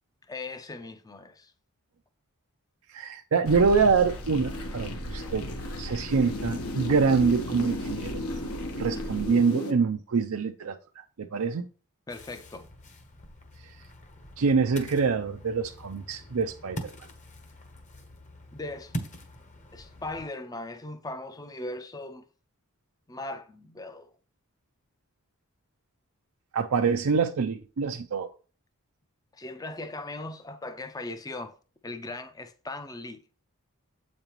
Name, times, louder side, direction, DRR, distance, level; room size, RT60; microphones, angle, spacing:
voice 1, 0.3-1.5 12.1-12.7 18.5-18.9 19.7-22.3 23.1-24.1 29.3-31.6 31.8-33.2, left 2 dB, 15° left, 0.5 m, -39 dB
voice 2, 2.9-5.4 5.8-8.2 8.8-11.7 13.6-13.7 14.4-16.9 26.5-28.3, right 5 dB, 70° right, 0.5 m, -25 dB
sound 1, 3.4-9.7, left 1 dB, 75° left, 1.2 m, -34 dB
Ocean, 12.1-20.3, equal, 35° left, 1.0 m, -43 dB
7.9 x 5.3 x 3.0 m
head